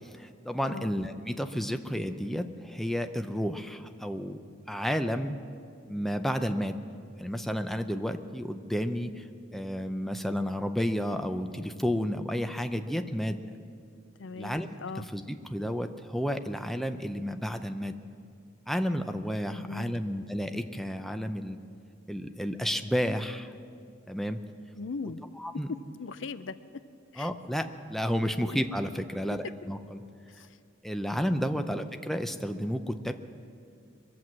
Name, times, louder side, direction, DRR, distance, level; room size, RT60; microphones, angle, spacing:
voice 1, 0.1-4.4 4.7-5.4 5.9-6.8 7.2-9.3 9.5-13.4 14.4-14.7 15.1-17.9 18.7-21.6 22.1-23.5 24.1-24.4 25.4-25.7 27.2-30.0 30.8-33.1, equal, ahead, 7 dB, 0.5 m, -31 dB
voice 2, 14.2-15.1 19.5-20.0 24.8-25.2 25.7-26.6 27.1-27.3 30.3-30.6 31.6-31.8, left 4 dB, 75° left, 13 dB, 0.5 m, -39 dB
23.0 x 7.8 x 7.4 m, 2.4 s
head